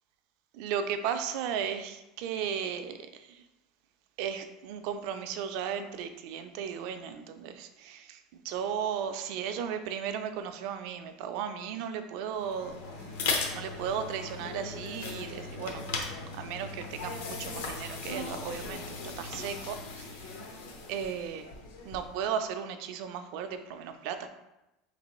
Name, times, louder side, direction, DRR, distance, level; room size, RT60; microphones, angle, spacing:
voice 1, 0.5-3.4 4.2-13.1 13.5-15.9 16.3-20.4 20.9-21.5 21.8-24.3, right 8 dB, 55° right, 8 dB, 0.4 m, -35 dB
sound 1, 12.4-22.2, left 4 dB, 80° left, 0.8 m, -38 dB
4.5 x 3.3 x 3.0 m, 0.95 s
cardioid pair, 170°, 0 cm